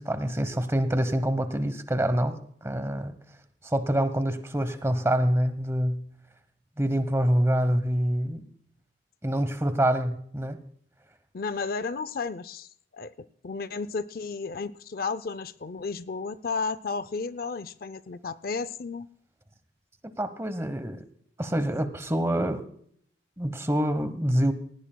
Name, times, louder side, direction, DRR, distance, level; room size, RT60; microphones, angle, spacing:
voice 1, 0.0-3.2 3.6-6.0 6.8-8.4 9.2-10.6 20.2-21.0 21.4-22.7 23.4-24.5, right 1 dB, 15° right, 10 dB, 1.0 m, -26 dB
voice 2, 11.3-19.1, left 4 dB, 50° left, 15 dB, 0.5 m, -33 dB
19.5 x 17.0 x 2.3 m, 0.63 s
head